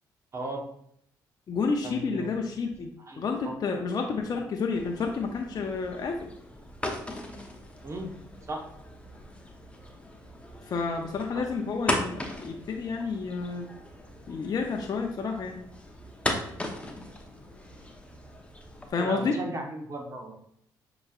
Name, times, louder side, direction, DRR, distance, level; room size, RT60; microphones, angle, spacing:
voice 1, 0.3-0.6 1.8-2.4 3.0-3.5 7.8-8.1 8.5-8.6 19.0-20.4, right 2 dB, 35° right, 2 dB, 1.1 m, -36 dB
voice 2, 1.5-2.9 3.2-6.3 10.7-13.7 14.3-15.6 18.9-19.3, left 4 dB, 50° left, 2 dB, 0.5 m, -30 dB
sound 1, 4.7-18.9, left 1 dB, 15° left, 0.8 m, -38 dB
6.5 x 3.0 x 2.4 m, 0.70 s
supercardioid pair, 60°, 9 cm